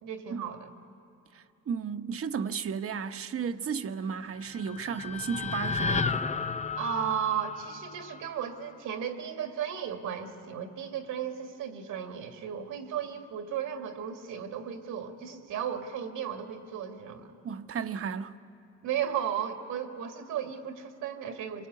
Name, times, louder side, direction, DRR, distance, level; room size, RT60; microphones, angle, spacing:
voice 1, 0.0-0.7 6.8-17.4 18.8-21.7, right 8 dB, 85° right, 2.1 m, -35 dB
voice 2, 1.3-6.3 17.4-18.4, right 6 dB, 50° right, 1.0 m, -34 dB
sound 1, 4.2-8.4, left 5 dB, 25° left, 0.7 m, -33 dB
25.0 x 23.0 x 9.5 m
cardioid pair, 90°, 30 cm